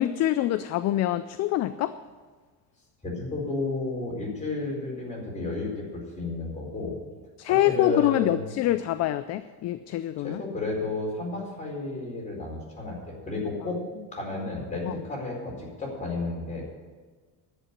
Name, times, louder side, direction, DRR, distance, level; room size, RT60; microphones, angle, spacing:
voice 1, 0.0-1.9 7.4-10.4 14.9-15.0, left 13 dB, 40° left, 12 dB, 0.4 m, -25 dB
voice 2, 3.0-7.0 7.5-8.6 10.2-13.8 14.1-16.7, left 2 dB, 15° left, -3 dB, 4.4 m, -32 dB
11.0 x 7.5 x 9.8 m, 1.4 s
cardioid pair, 150°, 41 cm